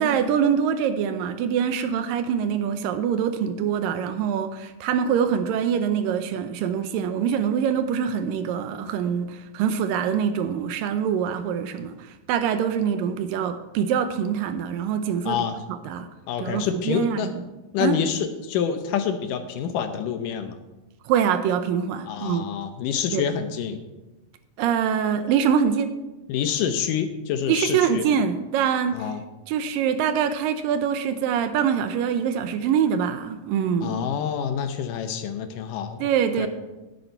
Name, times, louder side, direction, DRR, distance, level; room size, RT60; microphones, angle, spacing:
voice 1, 0.0-16.1 16.4-17.4 17.8-18.0 21.1-22.5 23.1-23.2 24.6-25.9 27.5-29.1 29.5-34.0 36.0-36.5, right 8 dB, 80° right, 9 dB, 2.3 m, -24 dB
voice 2, 15.3-15.6 16.3-17.3 17.7-20.5 22.1-23.8 26.3-28.1 28.9-29.2 33.8-36.1 36.4-36.5, left 8 dB, 75° left, 8 dB, 2.3 m, -27 dB
12.5 x 10.5 x 4.5 m, 1.1 s
omnidirectional pair, 4.2 m